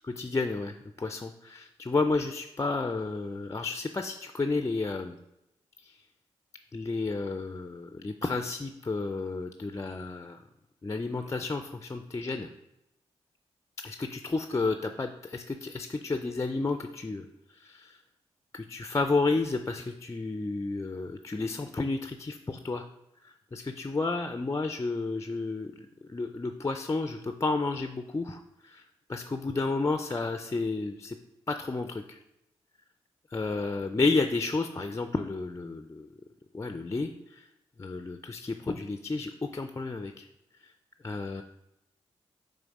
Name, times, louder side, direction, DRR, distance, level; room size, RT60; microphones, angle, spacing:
voice 1, 0.0-5.2 5.8-5.9 6.7-10.4 10.8-12.5 13.8-17.3 17.6-18.0 18.5-22.8 23.5-25.7 26.1-28.8 29.1-31.2 31.5-32.2 33.3-36.1 36.5-37.4 37.8-40.3 41.0-41.4, left 3 dB, 25° left, 7 dB, 0.4 m, -31 dB
5.6 x 3.7 x 5.3 m, 0.88 s
supercardioid pair, 45°, 12 cm